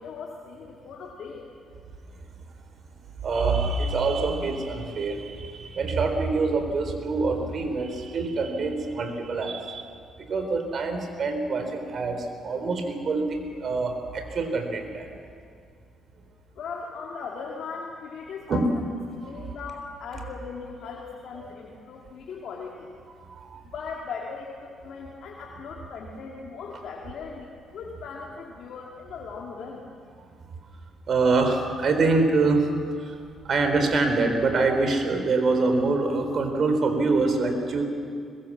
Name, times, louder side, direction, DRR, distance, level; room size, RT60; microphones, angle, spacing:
voice 1, 0.0-1.4 16.5-18.7 19.2-22.9 23.6-29.8, left 5 dB, 70° left, -2 dB, 2.6 m, -38 dB
voice 2, 3.2-9.8 10.3-15.1 18.5-18.6 23.3-23.6 31.1-32.7 33.0-33.2 33.4-37.8, right 3 dB, 50° right, 6 dB, 3.9 m, -25 dB
22.5 x 21.5 x 7.4 m, 2.2 s
cardioid pair, 90°, 0 cm